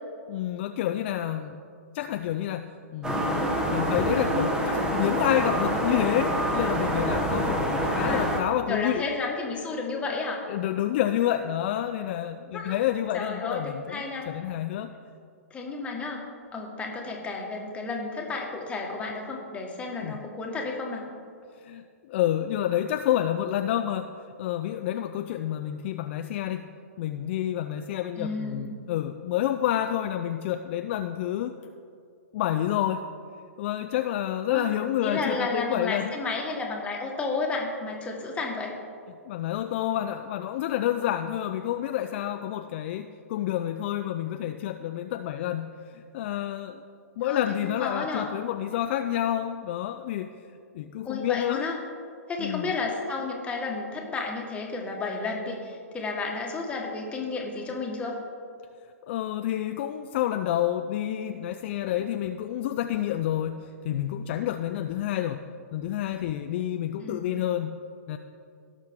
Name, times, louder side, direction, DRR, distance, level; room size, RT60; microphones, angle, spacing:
voice 1, 0.3-1.6 1.9-9.0 9.5-9.6 10.5-14.9 20.0-20.2 21.6-24.1 24.4-26.6 27.0-31.5 32.3-33.0 33.6-36.1 39.3-45.7 45.9-46.8 47.2-50.3 50.7-51.6 52.4-52.7 59.0-65.5 65.7-67.8 68.1-68.2, left 12 dB, 45° left, 7 dB, 0.4 m, -29 dB
sound 1, 3.0-8.4, right 1 dB, 10° right, 1.3 m, -26 dB
voice 2, 8.7-10.5 12.5-12.7 13.1-14.3 15.5-16.2 16.5-21.0 28.2-28.7 34.5-34.6 35.0-38.7 47.2-48.3 51.0-51.8 52.3-58.2 67.0-67.3, left 3 dB, 15° left, 0 dB, 1.7 m, -32 dB
17.0 x 6.5 x 3.7 m, 2.3 s
hypercardioid pair, 120°, 8 cm